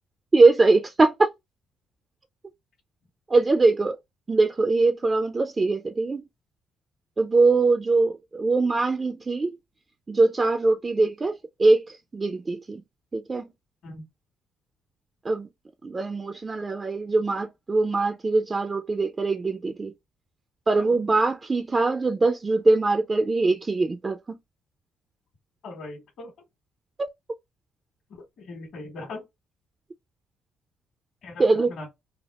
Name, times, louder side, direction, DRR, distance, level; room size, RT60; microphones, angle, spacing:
voice 1, 0.3-1.3 3.3-4.0 4.3-6.2 7.2-9.5 10.1-12.8 13.1-13.5 15.2-15.5 15.8-19.9 20.7-24.2 27.0-27.1 31.4-31.7, right 3 dB, 25° right, 0.3 m, -22 dB
voice 2, 25.6-26.3 28.4-29.3 31.2-31.5 31.8-31.9, left 2 dB, 65° left, 1.2 m, -39 dB
3.3 x 2.3 x 2.3 m
cardioid pair, 105°, 0 cm